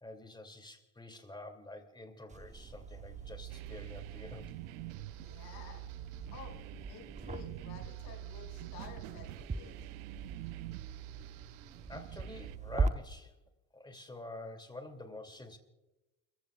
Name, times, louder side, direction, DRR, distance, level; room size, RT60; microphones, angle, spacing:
voice 1, 0.0-4.5 11.9-13.3 13.7-15.6, left 2 dB, 10° left, 6 dB, 2.6 m, -47 dB
sound 1, 2.3-12.9, right 4 dB, 15° right, 0.9 m, -41 dB
sound 2, 3.5-12.6, right 21 dB, 90° right, 0.5 m, -49 dB
voice 2, 5.2-5.8 6.3-9.9, left 6 dB, 70° left, 2 dB, 6.0 m, -52 dB
29.5 x 15.0 x 2.4 m, 1.0 s
supercardioid pair, 105°, 40 cm